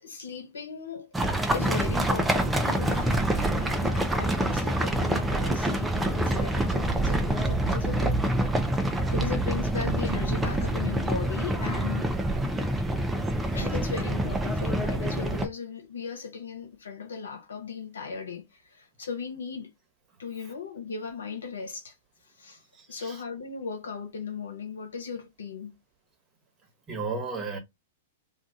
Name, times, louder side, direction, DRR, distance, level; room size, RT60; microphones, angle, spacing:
voice 1, 0.0-1.1 1.5-8.3 9.1-12.1 13.5-19.7 20.2-21.9 22.4-22.6 22.9-25.7, left 5 dB, 80° left, 1.0 m, -37 dB
sound 1, 1.1-15.5, right 1 dB, 10° right, 0.6 m, -26 dB
voice 2, 22.7-23.2 26.9-27.6, right 4 dB, 25° right, 1.3 m, -34 dB
2.6 x 2.5 x 3.5 m
hypercardioid pair, 110°, 0 cm